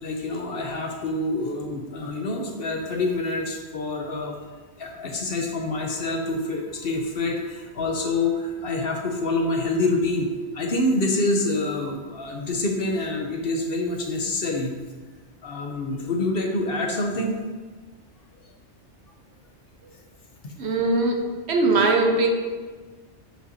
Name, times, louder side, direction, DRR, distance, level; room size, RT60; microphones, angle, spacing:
voice 1, 0.0-4.3 4.8-10.3 10.5-14.7 15.4-17.4 20.4-20.5 21.7-21.8, left 2 dB, 55° left, 2 dB, 1.0 m, -26 dB
voice 2, 20.6-21.2 21.5-22.3, right 3 dB, 65° right, 3 dB, 1.1 m, -20 dB
9.0 x 5.5 x 2.7 m, 1.4 s
omnidirectional pair, 1.2 m